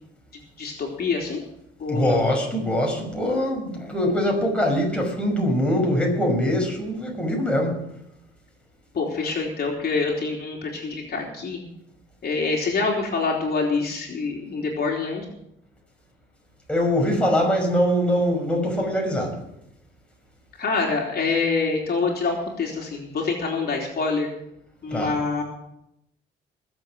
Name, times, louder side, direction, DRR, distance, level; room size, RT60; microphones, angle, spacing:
voice 1, 0.6-1.4 1.8-2.2 8.9-11.6 12.2-15.3 20.6-24.3 24.8-25.4, left 4 dB, 50° left, 3.5 m, -26 dB
voice 2, 1.9-7.8 16.7-19.4 24.9-25.1, equal, 5° left, 6.0 m, -23 dB
20.5 x 7.8 x 6.4 m
cardioid pair, 90°, 20 cm